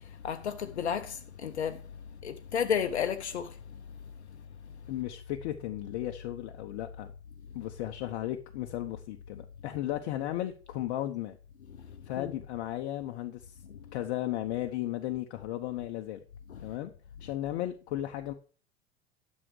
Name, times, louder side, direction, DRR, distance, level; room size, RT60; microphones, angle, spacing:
voice 1, 0.2-1.8 2.2-3.5 12.2-12.3 16.5-16.6, left 8 dB, 80° left, 0.7 m, -32 dB
voice 2, 4.9-7.1 7.5-11.4 12.1-13.6 13.9-16.2 16.6-16.9 17.2-18.3, left 13 dB, 55° left, 0.9 m, -35 dB
11.0 x 6.5 x 4.7 m
figure-of-eight pair, 80°, 33 cm